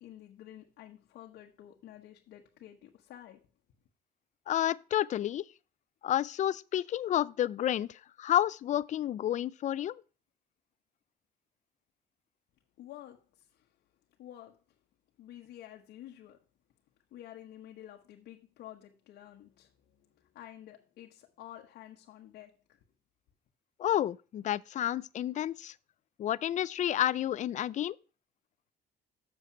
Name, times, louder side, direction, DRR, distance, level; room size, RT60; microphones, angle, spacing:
voice 1, 0.0-3.5 12.8-13.7 14.2-14.6 15.2-16.4 17.1-22.8, left 12 dB, 75° left, 1.1 m, -51 dB
voice 2, 4.5-5.5 6.0-10.0 23.8-25.7 26.2-28.0, left 11 dB, 45° left, 0.4 m, -30 dB
7.6 x 6.7 x 4.5 m
cardioid pair, 110°, 17 cm